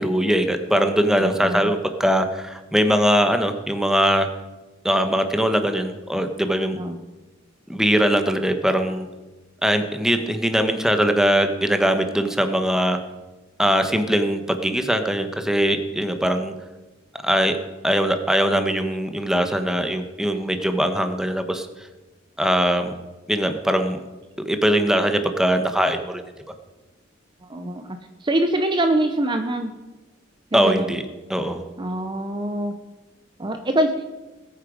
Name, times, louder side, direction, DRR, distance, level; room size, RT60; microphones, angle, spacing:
voice 1, 0.0-4.3 4.8-6.8 7.7-9.1 9.6-13.0 13.6-16.5 17.2-17.6 17.8-21.7 22.4-22.9 23.3-24.0 24.4-26.2 30.5-31.0 31.3-31.6, equal, 5° right, 7 dB, 1.1 m, -21 dB
voice 2, 1.2-1.7 6.8-7.0 27.4-29.7 30.5-30.9 31.8-32.7 33.4-33.9, right 1 dB, 25° right, 6 dB, 0.7 m, -24 dB
20.0 x 8.9 x 5.1 m, 1.2 s
head